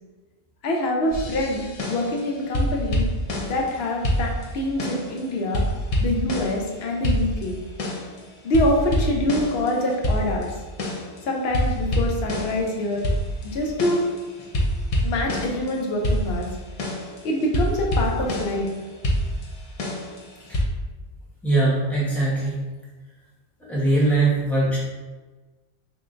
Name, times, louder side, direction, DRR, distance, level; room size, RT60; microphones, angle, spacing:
voice 1, 0.6-3.1 3.4-5.7 6.0-7.6 8.4-10.6 11.2-13.1 13.4-14.0 15.0-16.5 17.2-18.7, left 1 dB, 75° left, 0 dB, 0.8 m, -25 dB
sound 1, 1.1-2.2 2.5-3.7 4.0-5.2 5.5-6.7 7.0-8.2 8.5-11.2 11.5-15.7 16.0-18.7 19.0-20.6, equal, 45° left, 0.5 m, -26 dB
voice 2, 21.4-22.6 23.7-24.8, right 2 dB, ahead, -7 dB, 0.8 m, -21 dB
3.7 x 3.3 x 2.5 m, 1.3 s
omnidirectional pair, 1.1 m